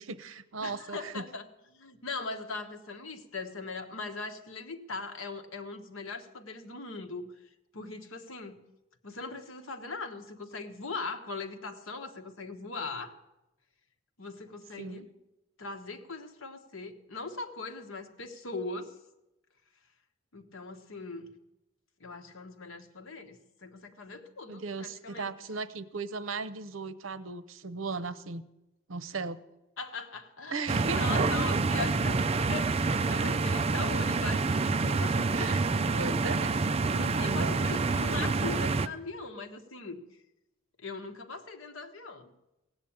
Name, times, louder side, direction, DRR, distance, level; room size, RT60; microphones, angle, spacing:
voice 1, 0.0-1.2 14.8-15.1 24.5-28.4 28.9-29.4 30.5-31.6 35.3-35.6 35.9-36.5 37.1-37.7, right 4 dB, 75° right, 14 dB, 0.8 m, -37 dB
voice 2, 0.6-1.4 1.7-7.3 7.7-8.6 9.0-13.1 14.2-15.1 15.6-18.9 20.3-21.3 22.0-25.4 29.8-32.2 32.5-36.0 36.9-40.0 40.8-42.3, left 3 dB, 80° left, 6 dB, 1.3 m, -40 dB
sound 1, 30.7-38.9, right 3 dB, 30° right, 0.4 m, -27 dB
16.5 x 8.1 x 8.8 m, 0.95 s
head